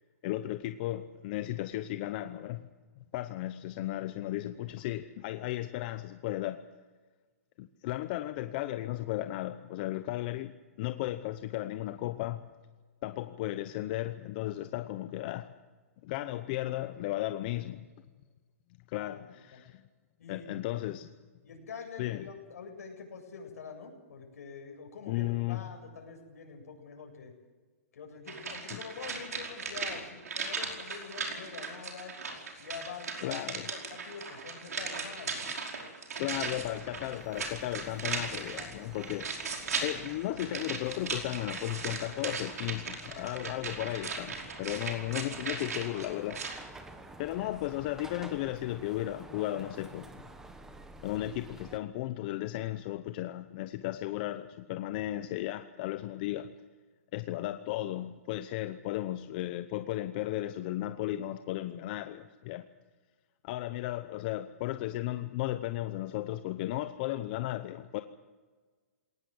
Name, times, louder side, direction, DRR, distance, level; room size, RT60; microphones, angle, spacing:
voice 1, 0.2-2.6 3.1-6.6 7.6-10.5 10.8-12.5 13.0-15.5 16.0-17.9 18.9-19.8 20.3-21.1 22.0-22.3 25.1-25.6 28.7-28.8 33.2-33.7 36.2-39.4 39.8-46.4 47.2-50.1 51.0-56.5 57.1-62.6 63.4-68.0, left 15 dB, 35° left, 9 dB, 0.8 m, -35 dB
voice 2, 17.3-17.7 18.9-19.2 19.5-19.6 20.2-20.7 21.4-27.3 27.9-32.1 32.6-35.6 36.2-36.6 38.4-38.7, left 5 dB, 70° left, 2 dB, 7.7 m, -46 dB
sound 1, 28.3-46.6 46.9-47.0, right 4 dB, 85° right, 5.1 m, -38 dB
sound 2, 36.3-51.8, right 2 dB, 5° right, 1.4 m, -51 dB
20.5 x 19.0 x 7.9 m, 1.4 s
hypercardioid pair, 155°, 8 cm